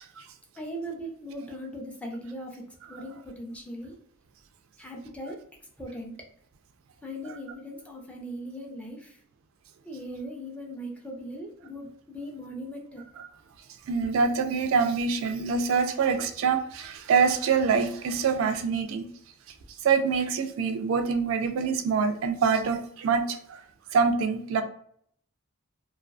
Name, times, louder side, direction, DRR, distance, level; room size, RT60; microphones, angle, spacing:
voice 1, 0.6-2.6 2.9-4.0 4.8-5.4 5.8-6.1 7.0-9.2 9.8-13.0, equal, 5° left, -1 dB, 0.5 m, -39 dB
voice 2, 13.9-19.1 19.8-23.2 23.9-24.6, right 5 dB, 70° right, 7 dB, 0.3 m, -25 dB
2.4 x 2.3 x 2.3 m, 0.63 s
head